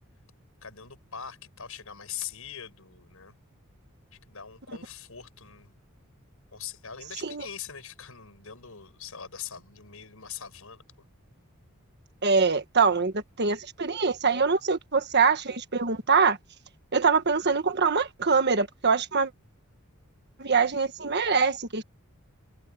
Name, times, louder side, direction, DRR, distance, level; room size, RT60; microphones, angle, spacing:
voice 1, 0.6-3.4 4.1-5.8 6.5-10.8, left 8 dB, 70° left, 5.7 m, -42 dB
voice 2, 12.2-16.4 16.9-19.3 20.4-21.8, right 5 dB, 50° right, 1.5 m, -24 dB
head